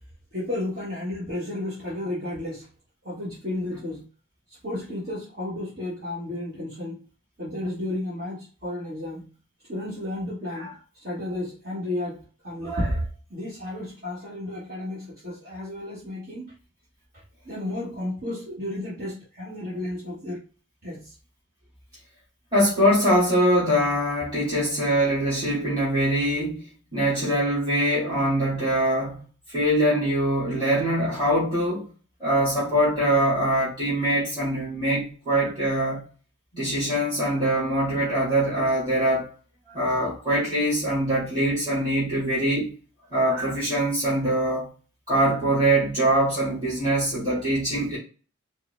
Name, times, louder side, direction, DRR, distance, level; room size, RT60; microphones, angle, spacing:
voice 1, 0.3-2.7 3.0-4.0 4.6-7.0 7.4-9.3 9.7-10.7 11.0-12.2 12.4-13.0 13.3-16.4 17.4-20.4 20.8-21.1, left 1 dB, 45° right, 1.2 m, -32 dB
voice 2, 22.5-29.2 29.5-31.9 32.2-36.0 36.5-39.3 39.7-42.8 43.1-44.7 45.1-48.0, right 1 dB, 20° right, 1.9 m, -23 dB
4.8 x 2.0 x 3.2 m
head